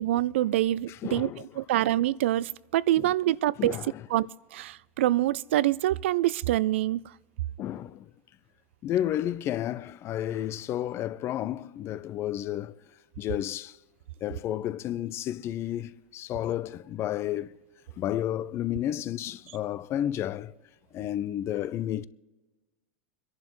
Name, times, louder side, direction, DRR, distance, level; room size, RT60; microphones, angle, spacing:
voice 1, 0.0-1.3 1.6-3.8 4.1-4.3 4.5-7.0, right 14 dB, 75° right, 0.4 m, -25 dB
voice 2, 0.9-1.4 3.0-3.1 3.6-4.1 7.6-8.1 8.8-12.8 13.2-13.8 14.2-17.6 18.0-20.6 20.9-22.0, left 12 dB, 40° left, 0.6 m, -31 dB
26.0 x 11.0 x 3.1 m
hypercardioid pair, 100°, 7 cm